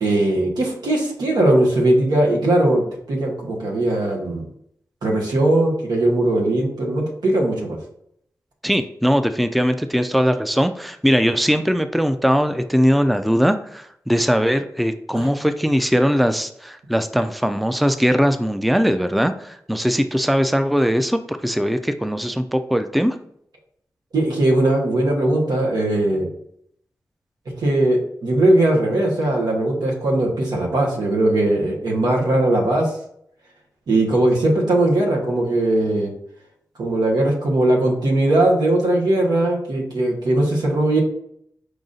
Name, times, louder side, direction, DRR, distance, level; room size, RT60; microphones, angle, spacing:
voice 1, 0.0-2.8 3.1-4.5 5.0-7.8 15.1-15.3 24.1-26.3 27.6-32.9 33.9-36.1 36.8-41.0, right 1 dB, 85° right, -2 dB, 1.1 m, -19 dB
voice 2, 8.6-23.1, equal, ahead, 9 dB, 0.4 m, -20 dB
4.9 x 2.5 x 3.8 m, 0.70 s
cardioid pair, 40°, 7 cm